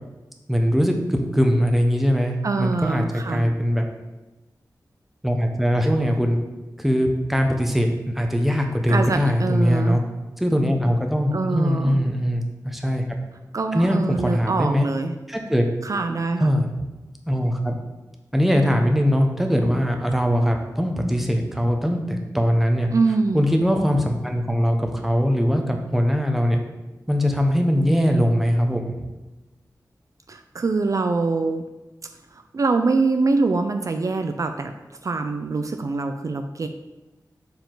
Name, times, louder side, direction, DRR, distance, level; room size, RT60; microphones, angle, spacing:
voice 1, 0.5-3.9 5.2-6.4 6.8-10.0 10.4-13.0 13.7-14.8 15.3-15.7 16.4-16.6 17.3-17.8 18.3-22.9 23.3-26.6 27.1-28.9, equal, 5° right, 3 dB, 0.9 m, -21 dB
voice 2, 2.4-3.4 8.9-10.0 11.3-12.0 13.5-15.1 15.8-16.5 22.9-23.4 30.3-31.6 32.3-36.7, right 3 dB, 50° right, 6 dB, 0.4 m, -24 dB
6.7 x 4.6 x 3.9 m, 1.1 s
wide cardioid pair, 90°, 7 cm